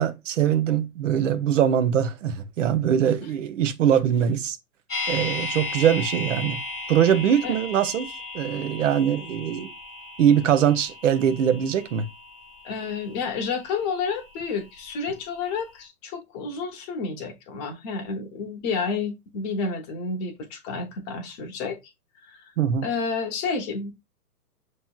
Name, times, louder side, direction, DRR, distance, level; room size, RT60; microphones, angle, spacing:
voice 1, 0.0-4.6 5.1-6.6 6.9-8.1 8.3-9.7 10.2-12.1 22.6-22.8, right 9 dB, 50° right, 0.8 m, -22 dB
sound 1, 4.9-14.9 15.2-15.3, left 3 dB, ahead, 0.3 m, -36 dB
voice 2, 12.6-21.8 22.3-22.4 22.8-23.9, left 5 dB, 25° left, 0.9 m, -30 dB
5.9 x 3.0 x 2.3 m
hypercardioid pair, 125°, 48 cm